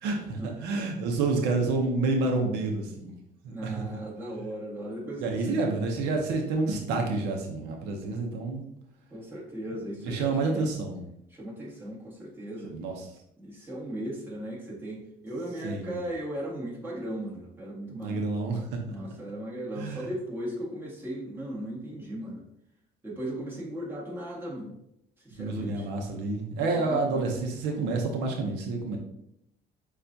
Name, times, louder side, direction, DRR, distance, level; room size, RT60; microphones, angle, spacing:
voice 1, 0.0-3.1 3.4-3.9 5.2-8.7 10.0-11.1 12.6-13.1 15.6-16.0 17.9-18.6 19.8-20.1 25.4-29.0, right 3 dB, 90° right, 2 dB, 0.7 m, -29 dB
voice 2, 3.5-5.7 9.1-10.7 11.3-12.7 13.4-18.2 18.9-22.4 23.0-24.7 25.2-25.9 26.6-27.3, right 1 dB, 15° right, -5 dB, 1.6 m, -37 dB
6.6 x 2.4 x 2.7 m, 0.78 s
cardioid pair, 110°, 17 cm